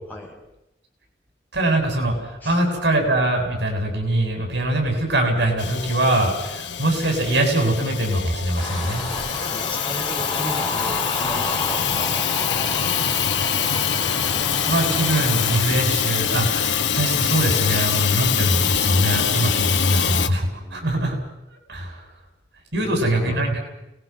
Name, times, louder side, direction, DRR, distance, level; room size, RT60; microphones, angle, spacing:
voice 1, 1.5-9.1 14.6-21.2 21.5-22.0 22.7-23.6, right 1 dB, 80° right, 2 dB, 7.7 m, -22 dB
Hiss / Toilet flush / Trickle dribble, 5.6-20.3, left 8 dB, 90° left, 0.9 m, -24 dB
sound 1, 8.6-15.6, left 2 dB, 25° left, 4.7 m, -30 dB
voice 2, 9.5-12.6 20.6-21.0 22.7-23.3, equal, 10° left, -4 dB, 6.4 m, -36 dB
29.5 x 20.0 x 6.1 m, 0.91 s
head